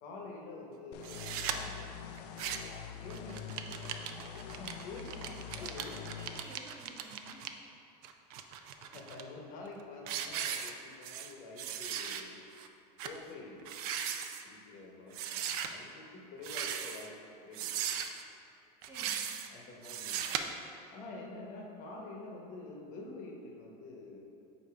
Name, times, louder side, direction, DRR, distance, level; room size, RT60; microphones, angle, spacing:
voice 1, 0.0-2.4 3.0-5.2 5.6-6.0 8.8-12.4 13.0-13.8 14.4-17.1 17.4-17.7 19.5-20.4 20.9-24.2, left 3 dB, 40° left, -1 dB, 0.9 m, -48 dB
sound 1, 0.9-6.4, left 8 dB, 90° left, 0.5 m, -45 dB
sound 2, 1.0-1.6 2.2-2.8 3.1-7.5 8.0-9.2 9.7-9.8 10.1-11.3 11.6-12.2 12.6-12.7 13.0-13.2 13.6-14.4 15.1-15.7 16.4-17.1 17.5-18.2 18.8-19.5 19.8-20.4, right 9 dB, 70° right, 0.5 m, -38 dB
voice 2, 5.1-7.4 18.8-19.4, right 1 dB, 10° right, -4 dB, 0.7 m, -53 dB
8.2 x 2.7 x 4.6 m, 2.8 s
supercardioid pair, 155°, 20 cm